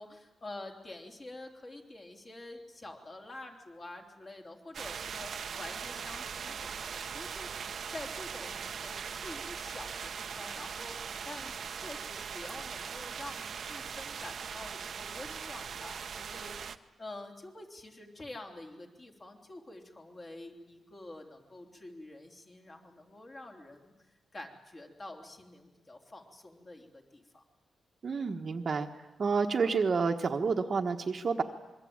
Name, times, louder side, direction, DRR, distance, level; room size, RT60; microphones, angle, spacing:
voice 1, 0.0-23.9 24.3-27.4, left 2 dB, 30° left, 2 dB, 3.3 m, -47 dB
sound 1, 4.7-16.8, right 7 dB, 55° right, 0.9 m, -40 dB
voice 2, 28.0-28.9 29.2-31.4, right 5 dB, 40° right, 5 dB, 1.3 m, -29 dB
26.0 x 22.5 x 8.8 m, 1.1 s
wide cardioid pair, 150°, 0 cm